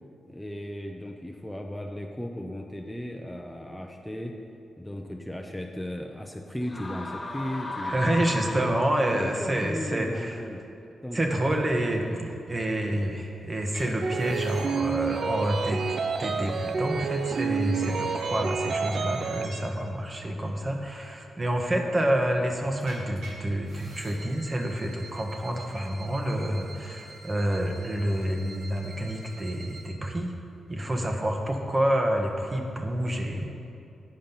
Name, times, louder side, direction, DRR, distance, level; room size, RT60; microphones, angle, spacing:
voice 1, 0.3-4.4 4.8-8.7 9.0-10.6 11.0-11.5 20.3-20.7 21.8-21.9 30.8-31.0, equal, 5° left, 2 dB, 0.7 m, -36 dB
sound 1, 6.6-9.3, left 1 dB, 35° left, 1.8 m, -35 dB
voice 2, 7.8-10.4 11.1-15.8 16.2-30.3 30.7-33.4, right 1 dB, 35° right, 2 dB, 1.3 m, -28 dB
sound 2, 13.7-13.8 14.1-19.6 22.8-23.3 23.6-29.9, right 2 dB, 80° right, 1.7 m, -46 dB
sound 3, 14.0-19.5, right 5 dB, 60° right, 0.4 m, -29 dB
8.9 x 5.2 x 5.7 m, 2.7 s
supercardioid pair, 40°, 0 cm